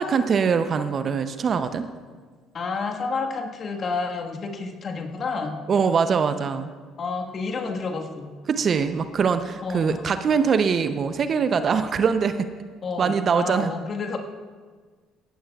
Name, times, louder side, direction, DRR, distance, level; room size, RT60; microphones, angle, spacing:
voice 1, 0.0-1.9 5.7-6.7 8.5-12.5 13.0-13.7, right 6 dB, 45° right, 10 dB, 0.6 m, -23 dB
voice 2, 2.5-5.6 7.0-8.3 9.6-10.0 12.8-14.2, left 4 dB, 45° left, 2 dB, 1.5 m, -30 dB
17.0 x 14.0 x 2.4 m, 1.5 s
hypercardioid pair, 65°, 0 cm